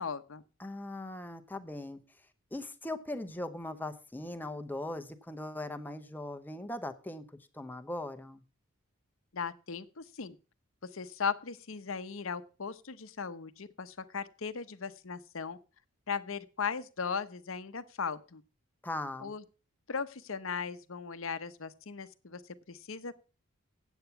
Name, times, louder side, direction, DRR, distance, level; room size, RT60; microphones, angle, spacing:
voice 1, 0.0-0.4 9.3-10.4 10.9-15.6 16.1-18.4 19.2-19.4 19.9-22.4 22.7-23.2, left 6 dB, 70° left, 12 dB, 0.8 m, -37 dB
voice 2, 0.6-8.4 18.8-19.3, left 1 dB, 10° left, 8 dB, 0.7 m, -40 dB
9.0 x 8.2 x 5.7 m, 0.35 s
head